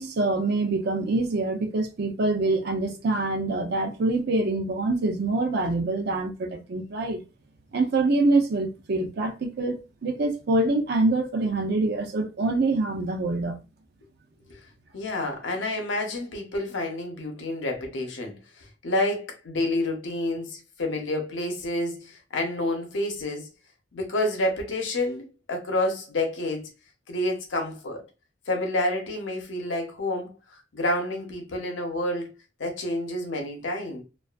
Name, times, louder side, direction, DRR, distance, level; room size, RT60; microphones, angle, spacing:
voice 1, 0.0-7.2 7.7-13.6, right 2 dB, 60° right, 0.5 m, -25 dB
voice 2, 14.9-23.5 23.9-26.7 27.1-28.0 28.5-32.3 32.6-34.0, left 1 dB, 75° left, 0.7 m, -29 dB
2.3 x 2.3 x 2.4 m
head